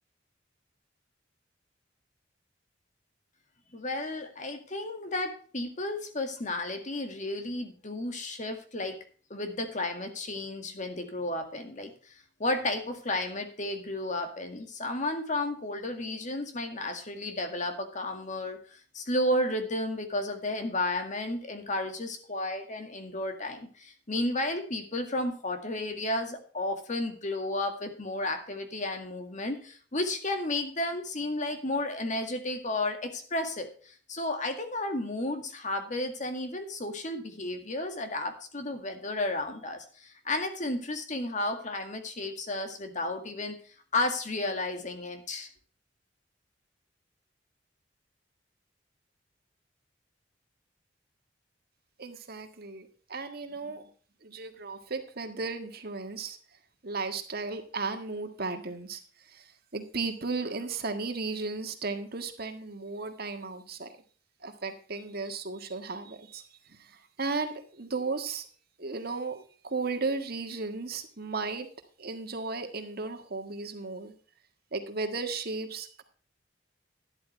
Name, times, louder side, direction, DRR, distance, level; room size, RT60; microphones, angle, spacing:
voice 1, 3.7-9.0 9.3-12.1 12.4-43.6 43.9-45.5, left 2 dB, 40° left, 6 dB, 2.0 m, -33 dB
voice 2, 52.0-53.8 54.2-56.4 56.8-63.9 64.4-66.4 66.7-68.5 68.8-71.7 72.0-74.1 74.7-76.0, right 4 dB, 55° right, 6 dB, 1.7 m, -35 dB
12.5 x 11.0 x 3.3 m, 0.42 s
head